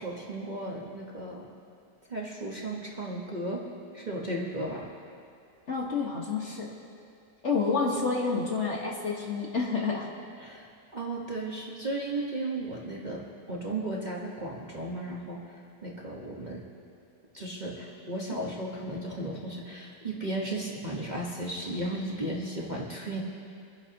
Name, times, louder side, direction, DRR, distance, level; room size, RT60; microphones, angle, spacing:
voice 1, 0.0-1.4 2.1-3.6 3.9-4.9 10.4-15.4 15.8-16.6 17.3-23.2, right 1 dB, 25° right, -4 dB, 1.4 m, -35 dB
voice 2, 5.7-6.7 7.4-10.1, left 4 dB, 45° left, -2 dB, 1.7 m, -29 dB
25.5 x 11.0 x 3.0 m, 2.4 s
omnidirectional pair, 1.9 m